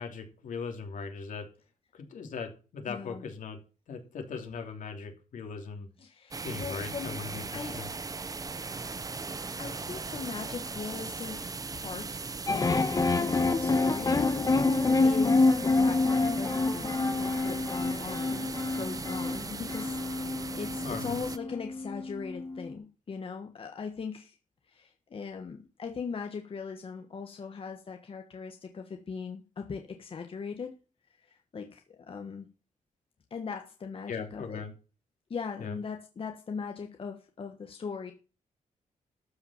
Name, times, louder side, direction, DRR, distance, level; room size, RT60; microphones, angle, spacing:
voice 1, 0.0-1.5 1.9-3.6 3.9-5.9 6.4-7.9 20.8-21.2 34.1-34.7 35.6-35.8, left 5 dB, 75° left, 4 dB, 3.1 m, -39 dB
voice 2, 2.9-3.2 6.0-7.2 7.5-7.8 9.6-12.9 13.2-14.5 15.0-18.5 18.7-24.4 24.7-30.7 31.2-32.5 33.3-34.6 35.3-38.1, left 5 dB, 45° left, 5 dB, 1.4 m, -40 dB
sound 1, 6.3-21.4, right 4 dB, 25° right, 0.9 m, -38 dB
sound 2, 12.5-22.7, left 3 dB, 30° left, 1.3 m, -27 dB
13.0 x 5.8 x 7.2 m, 0.34 s
wide cardioid pair, 130°, 13 cm